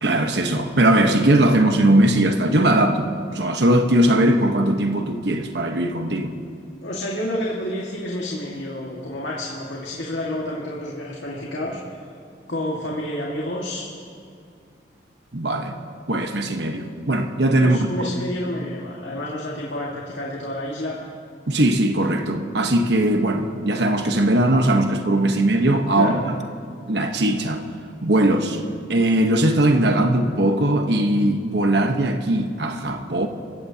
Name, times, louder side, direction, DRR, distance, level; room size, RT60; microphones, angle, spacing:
voice 1, 0.0-6.4 15.3-15.8 16.1-18.1 21.5-26.3 26.9-27.7 28.0-28.6 28.9-33.3, right 1 dB, 70° right, 1.2 m, -19 dB
voice 2, 6.8-11.8 12.5-13.9 17.6-21.0 25.9-26.2, left 1 dB, 85° left, 1.9 m, -29 dB
27.0 x 15.5 x 2.9 m
head